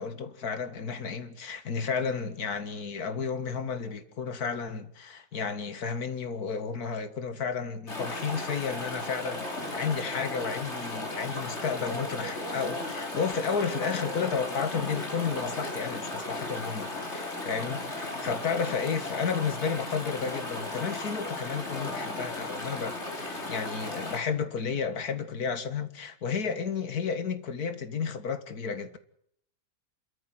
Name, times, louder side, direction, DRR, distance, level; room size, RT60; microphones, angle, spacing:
voice 1, 0.0-29.0, left 6 dB, 80° left, 2.1 m, -32 dB
Chatter / Stream, 7.9-24.2, left 2 dB, 45° left, 4.1 m, -36 dB
28.0 x 13.5 x 9.1 m
omnidirectional pair, 1.6 m